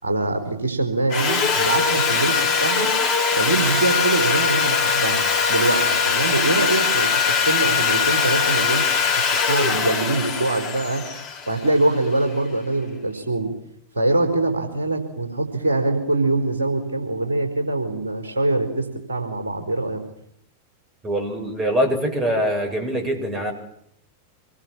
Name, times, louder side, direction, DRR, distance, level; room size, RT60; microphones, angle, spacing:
voice 1, 0.0-2.9 3.3-5.2 5.5-8.8 9.3-11.0 11.5-13.5 13.9-20.0, right 2 dB, 70° right, 4 dB, 4.7 m, -23 dB
Sawing, 1.1-12.2, left 6 dB, 40° left, 3.5 m, -21 dB
voice 2, 21.0-23.5, equal, 20° right, 4 dB, 7.4 m, -23 dB
26.5 x 23.0 x 7.5 m, 0.71 s
figure-of-eight pair, 90°, 0 cm